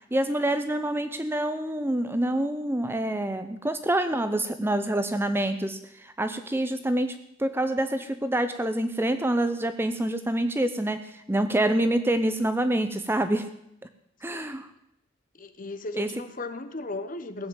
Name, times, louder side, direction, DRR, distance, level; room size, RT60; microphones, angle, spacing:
voice 1, 0.1-13.5 14.2-14.7 16.0-16.1, right 1 dB, 10° right, 10 dB, 0.6 m, -26 dB
voice 2, 15.4-17.5, left 2 dB, 40° left, 10 dB, 1.1 m, -36 dB
17.0 x 7.7 x 8.8 m, 0.80 s
head